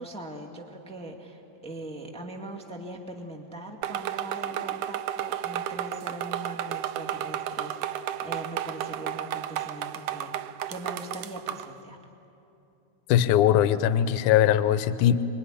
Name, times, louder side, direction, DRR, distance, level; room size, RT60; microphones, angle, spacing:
voice 1, 0.0-12.0, right 2 dB, 5° left, 2 dB, 1.4 m, -41 dB
sound 1, 3.8-11.7, right 11 dB, 75° right, 1.6 m, -33 dB
voice 2, 13.1-15.2, left 10 dB, 85° left, 12 dB, 2.2 m, -21 dB
26.5 x 22.5 x 9.9 m, 2.9 s
omnidirectional pair, 3.5 m